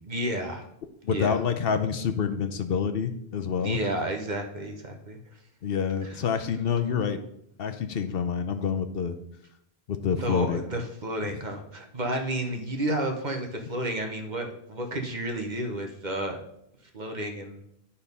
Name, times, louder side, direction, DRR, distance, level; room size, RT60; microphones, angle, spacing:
voice 1, 0.1-0.7 1.1-1.4 3.6-5.2 6.0-6.2 10.2-16.4 16.9-17.6, right 1 dB, 45° right, 3 dB, 1.2 m, -31 dB
voice 2, 1.0-3.8 5.6-7.2 7.6-9.2 9.9-10.6, left 6 dB, 70° left, 8 dB, 0.9 m, -27 dB
10.5 x 4.3 x 5.4 m, 0.75 s
omnidirectional pair, 1.1 m